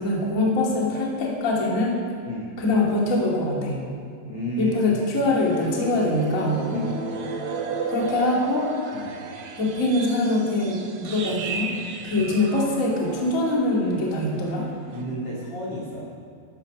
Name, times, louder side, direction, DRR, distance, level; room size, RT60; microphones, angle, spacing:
voice 1, 0.0-2.0 2.6-3.8 4.6-6.7 7.9-8.7 9.6-11.7 12.0-14.7, left 2 dB, 25° left, -3 dB, 1.8 m, -23 dB
voice 2, 4.2-4.9 6.7-7.0 8.9-9.2 14.9-16.0, equal, 50° left, -5 dB, 1.8 m, -32 dB
sound 1, 5.4-14.0 14.2-14.5 14.9-15.0, right 5 dB, 75° right, 3.7 m, -34 dB
13.5 x 12.0 x 6.3 m, 2.4 s
omnidirectional pair, 5.6 m